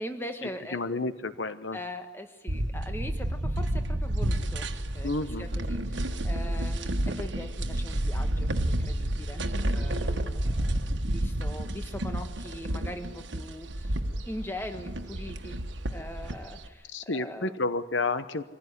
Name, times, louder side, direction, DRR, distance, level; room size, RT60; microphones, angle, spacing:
voice 1, 0.0-0.8 1.7-5.1 5.4-14.0 14.2-15.6 15.9-17.6, left 1 dB, 10° left, 6 dB, 1.5 m, -41 dB
voice 2, 0.7-1.8 5.0-5.5 16.9-18.4, left 3 dB, 85° left, 12 dB, 1.1 m, -30 dB
sound 1, 2.5-16.7, right 1 dB, 80° right, 1.4 m, -30 dB
23.5 x 15.5 x 9.8 m, 1.2 s
head